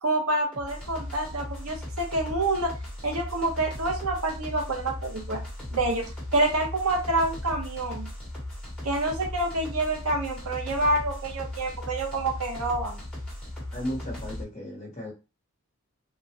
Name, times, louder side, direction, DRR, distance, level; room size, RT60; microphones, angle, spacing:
voice 1, 0.0-2.7 3.0-5.4 5.7-6.1 6.3-8.1 8.8-13.0, right 2 dB, 85° right, 2 dB, 0.9 m, -27 dB
sound 1, 0.5-14.4, left 1 dB, 5° left, 1.2 m, -37 dB
voice 2, 13.7-15.1, equal, 30° left, -2 dB, 1.1 m, -35 dB
3.7 x 2.2 x 2.8 m, 0.30 s
head